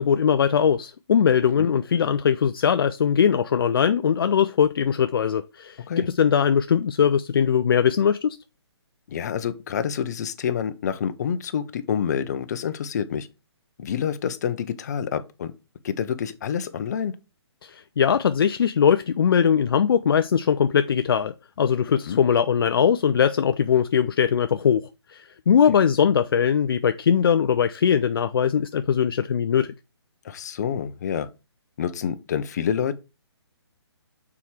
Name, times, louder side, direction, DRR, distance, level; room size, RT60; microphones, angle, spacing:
voice 1, 0.0-8.4 17.6-29.7, left 7 dB, 55° left, 0.5 m, -21 dB
voice 2, 9.1-13.3 13.8-15.5 15.8-17.2 22.1-22.2 25.6-25.7 30.2-31.3 31.8-32.9, left 8 dB, 40° left, 0.8 m, -28 dB
7.0 x 4.8 x 4.3 m
hypercardioid pair, 160°, 14 cm